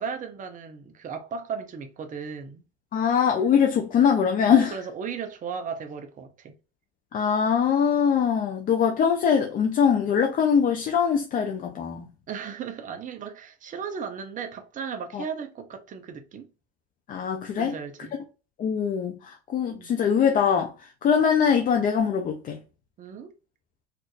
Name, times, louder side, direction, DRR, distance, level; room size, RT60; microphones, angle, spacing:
voice 1, 0.0-2.6 4.4-6.5 12.3-16.5 17.6-18.2 19.7-19.9 23.0-23.3, right 6 dB, 25° right, 0.7 m, -36 dB
voice 2, 2.9-4.7 7.1-12.1 15.1-15.2 17.1-17.7 18.6-20.7 21.0-22.6, left 7 dB, 30° left, 0.5 m, -22 dB
4.4 x 2.5 x 2.4 m
cardioid pair, 140°, 30 cm